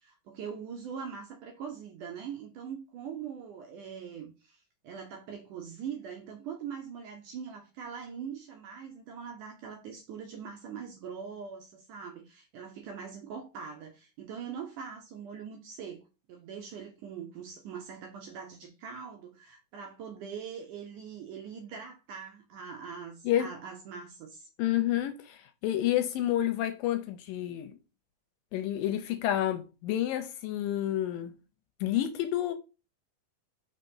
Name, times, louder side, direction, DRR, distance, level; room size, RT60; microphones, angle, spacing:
voice 1, 0.0-24.5, right 7 dB, 70° right, 2.1 m, -42 dB
voice 2, 24.6-27.8 28.5-31.3 31.8-32.5, left 12 dB, 80° left, 2.1 m, -29 dB
5.3 x 4.1 x 5.4 m
omnidirectional pair, 4.3 m